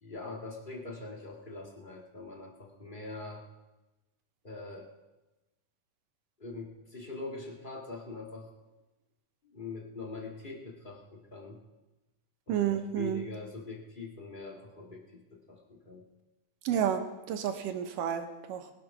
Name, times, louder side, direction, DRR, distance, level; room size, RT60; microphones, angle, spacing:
voice 1, 0.0-3.4 4.4-4.9 6.4-8.5 9.4-11.6 12.5-16.0, left 3 dB, 25° left, -1 dB, 1.1 m, -43 dB
voice 2, 12.5-13.2 16.7-17.0 17.3-18.6, right 9 dB, 80° right, 7 dB, 2.6 m, -30 dB
20.5 x 7.0 x 5.9 m, 1.1 s
omnidirectional pair, 3.8 m